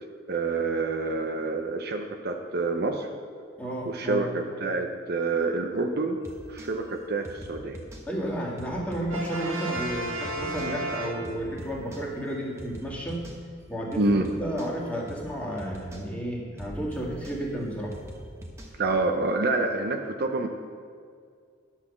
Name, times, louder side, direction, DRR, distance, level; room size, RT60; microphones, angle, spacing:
voice 1, 0.3-3.1 3.8-6.2 6.5-7.8 14.0-14.3 18.8-20.5, right 3 dB, 55° right, 4 dB, 0.7 m, -27 dB
voice 2, 3.6-4.3 8.1-13.2 13.7-17.9, equal, 5° left, -3 dB, 1.9 m, -32 dB
sound 1, 6.2-6.7 7.2-8.0 8.6-9.4 9.7-10.0 10.2-10.7 11.2-12.0 12.6-13.4 13.9-14.7 15.1-15.3 15.6-16.0 16.6-18.8, right 1 dB, 15° right, 1.1 m, -43 dB
Brass instrument, 9.1-11.8, right 2 dB, 90° right, 1.6 m, -33 dB
10.5 x 5.8 x 7.1 m, 2.1 s
head